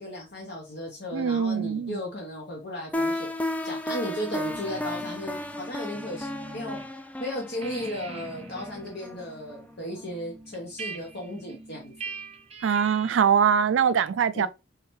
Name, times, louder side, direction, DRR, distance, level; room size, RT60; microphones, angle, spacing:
voice 1, 0.0-3.3 3.6-6.8 7.2-11.9 14.3-14.5, left 1 dB, 60° left, 1.0 m, -35 dB
voice 2, 1.1-2.0 12.6-14.5, right 7 dB, 90° right, 0.3 m, -23 dB
sound 1, 2.9-9.7, left 1 dB, 10° left, 0.3 m, -34 dB
sound 2, 4.4-6.9 7.2-13.4, right 3 dB, 35° right, 0.7 m, -43 dB
3.8 x 3.3 x 3.2 m
head